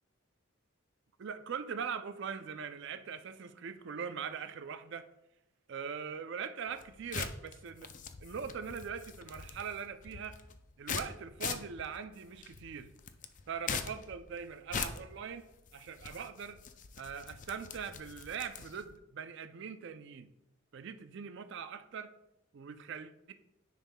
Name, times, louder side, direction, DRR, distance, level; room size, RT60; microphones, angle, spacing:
voice 1, 1.2-5.1 5.7-7.9 8.2-10.4 10.8-12.9 13.5-15.4 15.7-16.6 17.0-20.3 20.7-22.1 22.5-23.3, right 6 dB, 55° right, 10 dB, 0.4 m, -41 dB
sound 1, 6.7-18.9, left 6 dB, 35° left, 0.4 m, -43 dB
10.0 x 5.4 x 2.2 m, 0.87 s
head